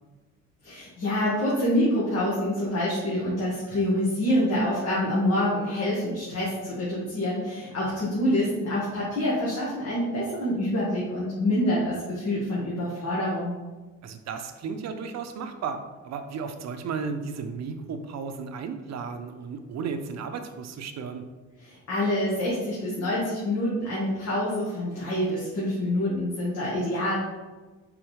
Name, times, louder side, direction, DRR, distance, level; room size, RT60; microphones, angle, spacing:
voice 1, 0.6-13.5 21.6-27.2, left 1 dB, 55° left, -7 dB, 1.5 m, -26 dB
voice 2, 14.0-21.2, right 5 dB, 60° right, 7 dB, 0.6 m, -34 dB
4.8 x 3.4 x 3.1 m, 1.2 s
cardioid pair, 90°, 30 cm